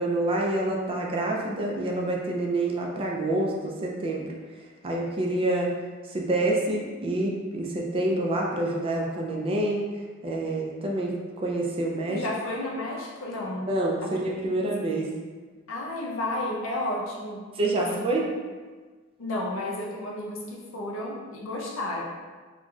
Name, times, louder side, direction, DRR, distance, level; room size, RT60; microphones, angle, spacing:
voice 1, 0.0-4.3 4.8-5.7 6.1-9.9 10.2-12.2 13.7-15.1 17.5-18.3, right 2 dB, 30° right, -1 dB, 0.3 m, -27 dB
voice 2, 12.1-13.7 14.0-14.2 14.5-15.1 15.7-17.4 17.8-18.1 19.2-22.0, left 1 dB, 90° left, -2 dB, 0.6 m, -32 dB
3.0 x 2.5 x 2.3 m, 1.4 s
head